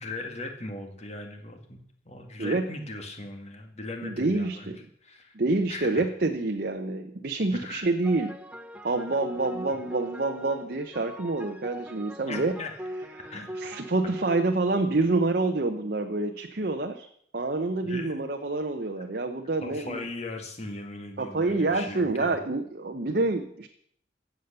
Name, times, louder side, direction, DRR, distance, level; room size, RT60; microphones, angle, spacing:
voice 1, 0.0-4.7 5.0-5.3 5.7-5.9 7.5-7.9 12.3-12.7 13.0-13.5 17.8-18.2 19.6-22.4, left 2 dB, 35° left, 4 dB, 2.0 m, -39 dB
voice 2, 2.4-2.7 4.0-4.9 5.3-8.4 8.8-17.1 17.3-20.1 21.2-23.7, right 2 dB, 50° right, 4 dB, 0.8 m, -27 dB
sound 1, 8.0-15.4, equal, 5° right, 0.7 m, -40 dB
14.5 x 8.3 x 6.8 m, 0.67 s
head